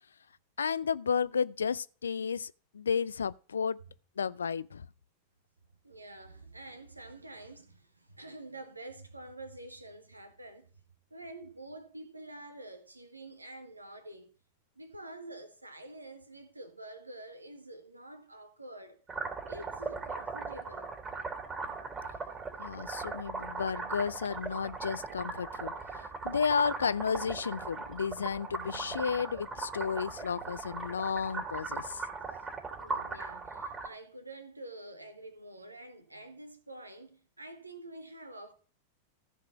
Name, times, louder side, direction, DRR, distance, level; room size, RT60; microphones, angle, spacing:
voice 1, 0.6-3.8 4.2-4.9 22.6-32.0, left 6 dB, 70° left, 0.4 m, -32 dB
voice 2, 5.8-10.7 11.1-14.3 14.7-19.0 19.5-20.9 32.8-38.5, right 1 dB, 85° right, 1.5 m, -47 dB
sound 1, 19.1-33.9, right 4 dB, 20° right, 3.0 m, -39 dB
14.5 x 4.9 x 5.6 m
figure-of-eight pair, 90°, 0 cm